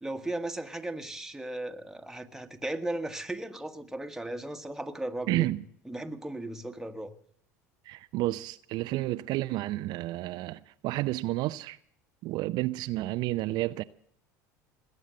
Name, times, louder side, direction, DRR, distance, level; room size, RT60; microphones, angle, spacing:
voice 1, 0.0-5.5 5.9-7.1, right 1 dB, 5° right, 1.4 m, -36 dB
voice 2, 5.3-5.6 7.8-11.8 12.2-13.8, right 17 dB, 60° right, 0.5 m, -31 dB
20.5 x 8.5 x 7.7 m
hypercardioid pair, 80°, 8 cm